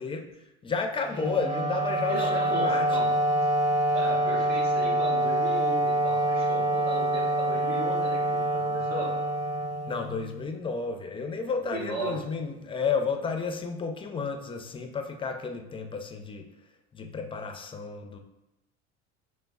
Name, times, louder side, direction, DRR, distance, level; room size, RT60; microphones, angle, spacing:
voice 1, 0.0-3.1 9.8-16.5 16.9-18.2, left 5 dB, 15° left, 4 dB, 0.4 m, -32 dB
Wind instrument woodwind instrument, 1.1-10.4, right 1 dB, 10° right, 0.7 m, -26 dB
voice 2, 2.1-3.1 3.9-9.1 11.7-12.2, right 1 dB, 55° right, -2 dB, 1.4 m, -36 dB
5.1 x 3.1 x 2.3 m, 0.90 s
supercardioid pair, 105°, 32 cm